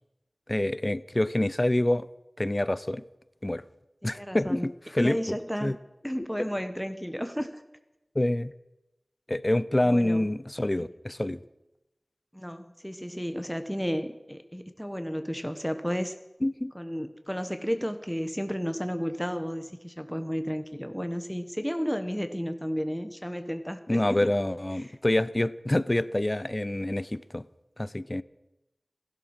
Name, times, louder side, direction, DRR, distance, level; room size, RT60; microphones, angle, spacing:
voice 1, 0.5-2.1 2.4-3.0 3.4-3.6 4.0-5.4 5.6-5.8 8.2-8.5 9.3-11.4 16.4-16.7 23.9-27.4 27.8-28.2, left 1 dB, 30° left, 18 dB, 0.6 m, -26 dB
voice 2, 4.0-4.7 5.0-5.7 6.0-7.6 9.8-10.3 10.7-10.9 12.3-16.1 16.7-24.3, equal, ahead, 8 dB, 1.1 m, -32 dB
16.0 x 11.5 x 6.5 m, 0.96 s
wide cardioid pair, 55°, 0 cm